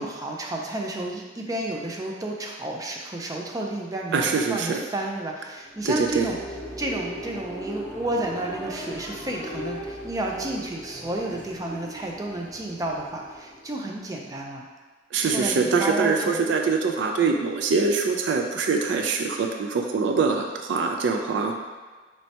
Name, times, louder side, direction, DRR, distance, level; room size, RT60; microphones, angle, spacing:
voice 1, 0.0-6.4 6.8-14.6 15.2-16.4 17.2-17.3, right 1 dB, 20° right, 0 dB, 0.4 m, -31 dB
voice 2, 4.1-4.8 5.9-6.3 15.1-21.5, right 4 dB, 80° right, 3 dB, 0.4 m, -24 dB
sound 1, 5.5-14.1, equal, 5° right, 1.5 m, -38 dB
4.3 x 3.1 x 2.8 m, 1.4 s
head